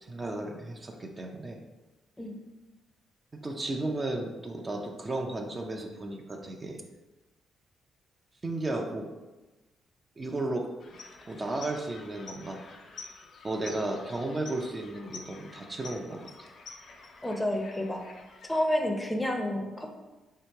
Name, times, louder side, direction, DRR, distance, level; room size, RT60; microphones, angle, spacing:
voice 1, 0.0-1.6 3.4-6.8 8.4-9.1 10.2-10.7 11.2-12.7 13.4-16.5, right 2 dB, 30° right, 1 dB, 0.5 m, -34 dB
sound 1, 10.8-18.5, left 4 dB, 65° left, 0.5 m, -48 dB
voice 2, 17.2-18.0 18.5-19.9, left 1 dB, 10° left, 3 dB, 0.6 m, -29 dB
2.8 x 2.8 x 4.4 m, 1.2 s
supercardioid pair, 60°, 0 cm